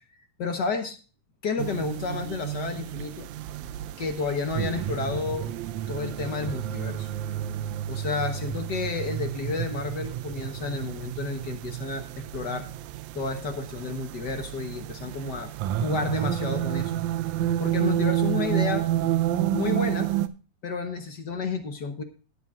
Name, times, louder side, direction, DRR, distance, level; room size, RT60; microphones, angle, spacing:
voice 1, 0.4-1.0 1.4-3.3 4.0-5.5 5.9-7.1 7.9-12.7 13.1-15.5 15.8-16.9 17.6-18.9 19.5-20.1 20.6-22.0, left 4 dB, 60° left, 7 dB, 1.1 m, -31 dB
sound 1, 1.6-20.3, right 12 dB, 80° right, 1.9 m, -30 dB
19.5 x 8.9 x 2.4 m, 0.36 s
omnidirectional pair, 3.5 m